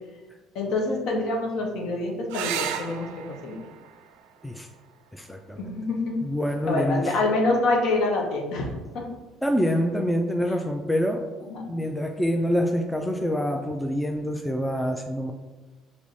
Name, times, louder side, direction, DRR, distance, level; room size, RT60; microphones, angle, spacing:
voice 1, 0.5-3.6 5.6-6.2 6.7-8.7 8.9-9.0 11.5-11.8, left 2 dB, 70° left, 0 dB, 0.9 m, -26 dB
sound 1, 2.3-7.3 9.2-9.8 13.3-13.4 13.7-13.8, right 9 dB, 85° right, 0.3 m, -38 dB
voice 2, 5.1-5.6 6.2-7.1 9.4-11.3 11.7-15.3, equal, 5° left, 3 dB, 0.4 m, -26 dB
4.7 x 3.1 x 2.6 m, 1.2 s
supercardioid pair, 85°, 0 cm